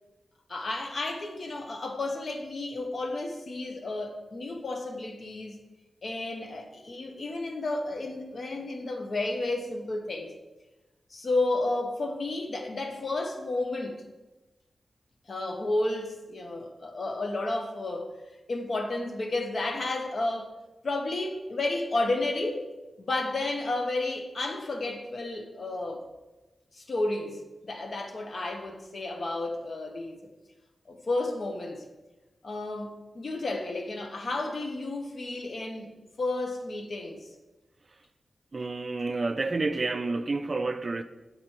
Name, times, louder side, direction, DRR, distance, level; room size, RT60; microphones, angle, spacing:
voice 1, 0.5-5.6 6.0-10.3 11.1-14.0 15.3-18.1 18.5-20.5 20.8-22.6 23.0-26.0 26.7-30.2 30.9-31.8 32.4-35.9 36.2-37.3, left 2 dB, 60° left, 1.0 m, -32 dB
voice 2, 38.5-41.0, right 3 dB, 45° right, 0.4 m, -29 dB
8.1 x 4.2 x 4.4 m
wide cardioid pair, 85°, 0 cm